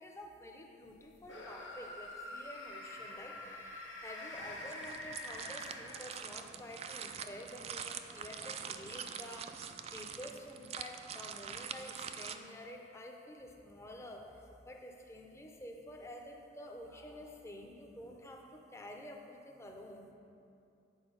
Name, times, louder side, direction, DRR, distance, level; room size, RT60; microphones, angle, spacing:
voice 1, 0.0-9.5 9.9-20.1, left 1 dB, 15° left, 2 dB, 0.7 m, -49 dB
sound 1, 1.2-6.5, left 1 dB, 75° left, 1.2 m, -46 dB
sound 2, 4.3-12.4, right 7 dB, 35° right, 0.3 m, -45 dB
9.0 x 4.8 x 5.6 m, 2.6 s
head